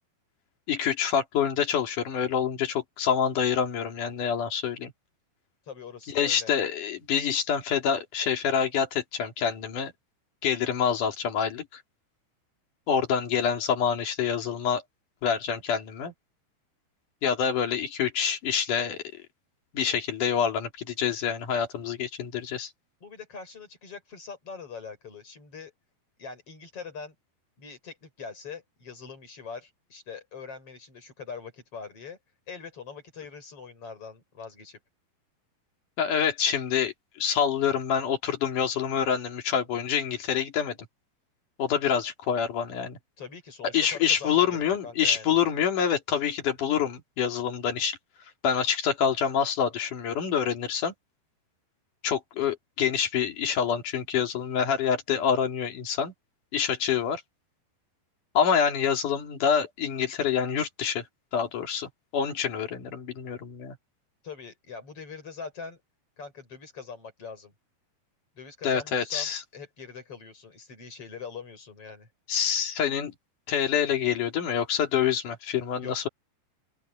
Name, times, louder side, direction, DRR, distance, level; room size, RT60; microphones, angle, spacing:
voice 1, 0.7-4.9 6.1-9.9 10.4-11.8 12.9-14.8 15.2-16.1 17.2-19.0 19.7-22.7 36.0-40.8 41.6-43.0 43.7-48.0 48.4-50.9 52.0-56.1 56.5-57.2 58.3-61.0 61.3-63.8 68.6-69.4 72.3-73.1 73.5-76.1, left 8 dB, 50° left, 3.9 m, -26 dB
voice 2, 5.7-6.5 23.0-25.7 26.2-27.1 27.6-32.2 32.5-34.8 43.2-45.3 64.2-65.8 66.2-67.5 68.4-72.1 75.8-76.0, left 5 dB, 30° left, 7.4 m, -42 dB
open air
omnidirectional pair, 5.1 m